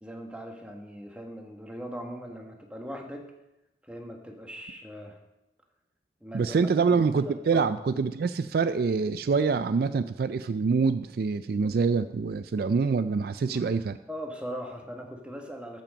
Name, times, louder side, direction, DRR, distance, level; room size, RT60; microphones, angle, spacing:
voice 1, 0.0-3.3 3.8-5.2 6.2-7.7 13.5-13.7 14.1-15.8, equal, 5° right, 2 dB, 1.3 m, -40 dB
voice 2, 6.3-14.0, right 5 dB, 55° right, 12 dB, 0.3 m, -25 dB
13.5 x 6.0 x 5.1 m, 0.94 s
head